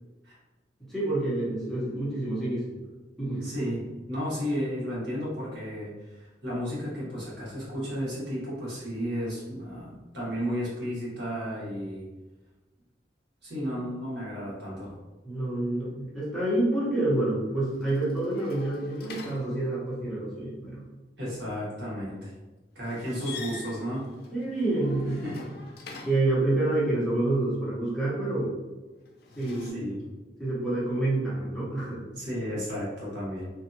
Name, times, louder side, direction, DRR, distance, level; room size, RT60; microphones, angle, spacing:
voice 1, 0.9-2.6 3.2-3.5 15.2-20.8 24.3-25.2 26.0-28.5 29.4-29.9 30.4-32.0, right 2 dB, ahead, -9 dB, 0.8 m, -28 dB
voice 2, 3.4-12.1 13.4-14.9 21.2-22.3 22.7-24.0 25.2-25.4 29.6-30.0 32.1-33.5, equal, 75° right, -7 dB, 1.2 m, -33 dB
sound 1, 17.7-20.0 22.8-26.4 29.0-29.7, left 4 dB, 60° left, 0.4 m, -45 dB
2.6 x 2.3 x 2.6 m, 1.2 s
head